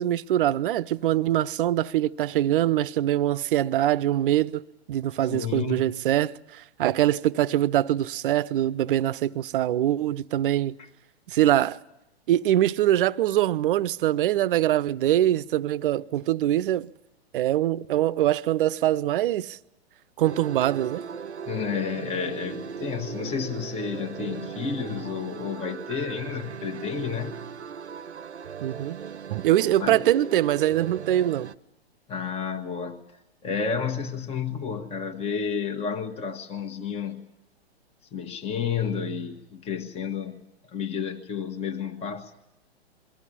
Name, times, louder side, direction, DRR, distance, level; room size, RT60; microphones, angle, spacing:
voice 1, 0.0-4.6 4.9-10.7 11.3-11.8 12.3-16.9 17.3-19.6 20.2-21.0 28.6-29.0 29.3-31.5, right 13 dB, 55° right, 0.8 m, -23 dB
voice 2, 5.3-5.9 10.8-10.9 21.5-27.4 29.8-30.0 32.1-33.0 33.4-37.3 38.1-42.3, left 6 dB, 20° left, 1.3 m, -31 dB
sound 1, 20.2-31.5, right 7 dB, 90° right, 0.9 m, -38 dB
23.0 x 15.0 x 9.9 m
hypercardioid pair, 120°, 33 cm